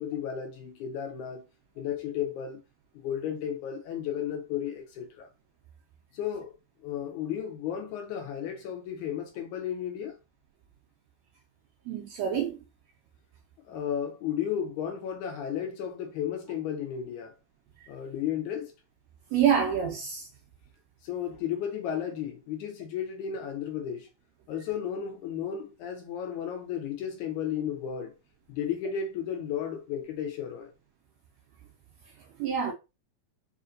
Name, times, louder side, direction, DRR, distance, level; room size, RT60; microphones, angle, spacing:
voice 1, 0.0-1.4 1.8-2.6 3.0-5.3 6.1-6.5 6.8-10.2 13.7-17.3 17.9-18.7 21.0-24.1 24.5-28.1 28.5-30.7 32.7-32.8, left 9 dB, 80° left, 2.2 m, -33 dB
voice 2, 11.9-12.6 19.3-20.3 32.4-32.7, right 8 dB, 80° right, 1.6 m, -26 dB
5.0 x 2.6 x 2.5 m
omnidirectional pair, 3.6 m